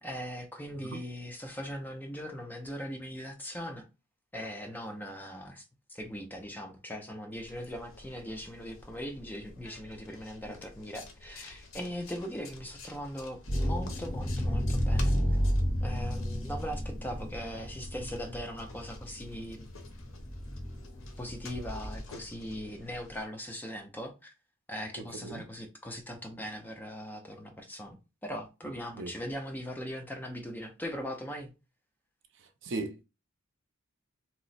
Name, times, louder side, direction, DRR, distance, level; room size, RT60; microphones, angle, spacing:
voice 1, 0.0-3.8 4.3-5.6 5.9-15.1 15.8-19.7 21.2-24.3 24.7-31.5, equal, 10° left, 0.4 m, -40 dB
sound 1, 7.3-23.2, left 3 dB, 65° left, 0.6 m, -51 dB
sound 2, 13.5-22.0, equal, 50° left, 1.5 m, -32 dB
voice 2, 25.0-25.4 29.0-29.1 32.4-33.0, right 3 dB, 60° right, 0.5 m, -38 dB
2.9 x 2.0 x 4.0 m
head